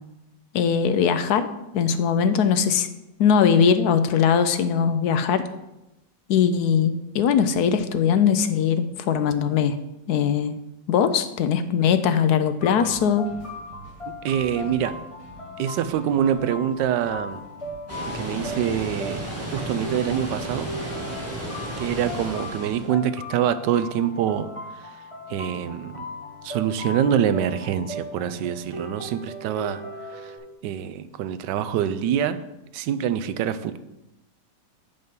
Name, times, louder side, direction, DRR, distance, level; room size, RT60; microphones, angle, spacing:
voice 1, 0.5-1.5 1.7-2.9 3.2-5.5 6.3-9.8 10.1-10.6 10.9-13.3, left 7 dB, 70° left, 11 dB, 1.0 m, -20 dB
sound 1, 12.6-30.4, left 1 dB, 20° left, 1.5 m, -38 dB
sound 2, 12.8-22.4, right 3 dB, 45° right, 2.1 m, -47 dB
voice 2, 14.2-15.0 15.6-17.4 18.1-20.7 21.8-24.5 25.3-26.1 26.4-29.8 30.1-30.3 30.6-32.4 32.7-33.8, right 9 dB, 80° right, 12 dB, 1.2 m, -25 dB
Water, 17.9-22.9, right 1 dB, 10° right, 1.8 m, -33 dB
7.9 x 5.5 x 5.2 m, 0.93 s
omnidirectional pair, 1.9 m